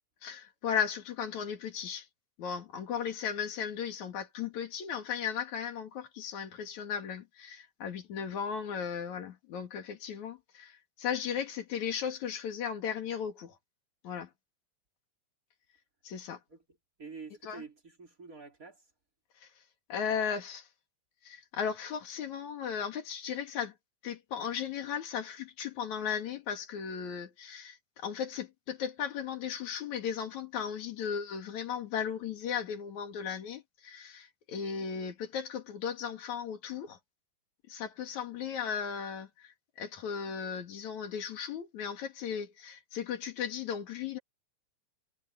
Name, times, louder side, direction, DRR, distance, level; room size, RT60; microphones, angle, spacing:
voice 1, 0.2-2.1 2.4-13.6 14.0-14.3 16.0-16.4 17.4-17.6 19.4-19.5 19.9-20.7 21.2-23.7 24.0-37.0 37.7-44.2, left 7 dB, 70° left, 3.4 m, -36 dB
voice 2, 17.0-18.8, right 5 dB, 25° right, 3.9 m, -47 dB
omnidirectional pair, 3.4 m